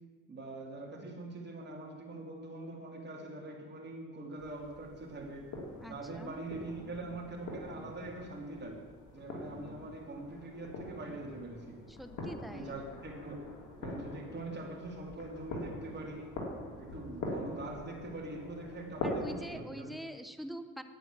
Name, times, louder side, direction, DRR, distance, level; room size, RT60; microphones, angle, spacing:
voice 1, 0.3-5.5 5.9-8.8 9.1-11.8 12.5-13.5 13.8-16.3 16.8-19.9, right 2 dB, 35° right, 0 dB, 3.0 m, -43 dB
sound 1, 4.4-19.5, left 2 dB, 75° left, 3.1 m, -44 dB
voice 2, 5.8-6.3 11.9-12.8 19.0-20.8, equal, ahead, 9 dB, 0.9 m, -44 dB
10.5 x 9.1 x 7.4 m, 1.4 s
cardioid pair, 90°, 30 cm